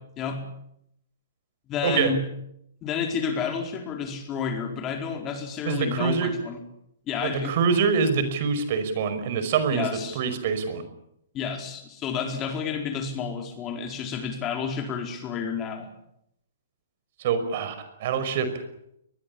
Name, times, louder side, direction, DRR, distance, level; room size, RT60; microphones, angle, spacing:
voice 1, 1.7-2.2 2.8-6.6 7.1-7.6 9.7-10.2 11.3-15.9, left 6 dB, 25° left, 4 dB, 4.6 m, -30 dB
voice 2, 5.7-6.3 7.2-9.9 10.2-10.9 17.2-17.8 18.0-18.5, right 6 dB, 50° right, 10 dB, 5.4 m, -25 dB
23.0 x 20.5 x 8.7 m, 0.77 s
hypercardioid pair, 140°, 0 cm